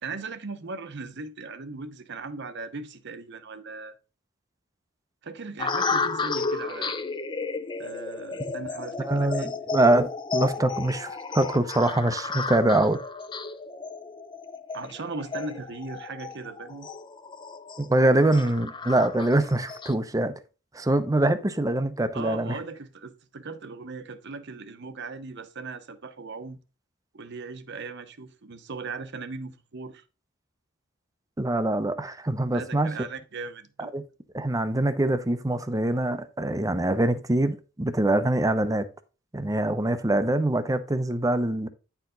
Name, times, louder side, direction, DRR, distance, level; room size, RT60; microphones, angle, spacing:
voice 1, 0.0-3.9 5.2-7.0 7.8-9.5 14.7-16.9 18.0-18.3 22.1-26.6 27.1-30.0 32.5-33.9, right 4 dB, 60° right, 0.9 m, -38 dB
sound 1, 5.6-19.9, left 4 dB, 25° left, 0.5 m, -33 dB
voice 2, 9.0-13.0 17.8-20.3 20.7-22.6 31.4-33.0 33.8-34.0 34.3-38.9 39.3-41.7, right 1 dB, 15° right, 0.7 m, -24 dB
9.7 x 4.6 x 3.9 m
head